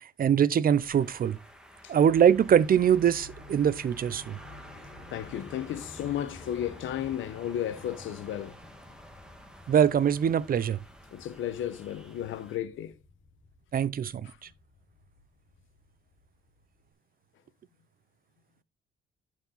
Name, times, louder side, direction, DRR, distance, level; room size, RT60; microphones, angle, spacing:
voice 1, 0.2-1.4 1.9-4.4 9.7-10.8 13.7-14.3, right 8 dB, 45° right, 0.6 m, -23 dB
sound 1, 0.7-12.6, equal, 5° right, 1.9 m, -51 dB
sound 2, 2.0-16.9, left 2 dB, 35° left, 3.5 m, -51 dB
voice 2, 5.1-8.6 11.1-12.9 14.2-14.4, left 11 dB, 80° left, 1.1 m, -34 dB
11.0 x 4.9 x 3.9 m
cardioid pair, 90°, 20 cm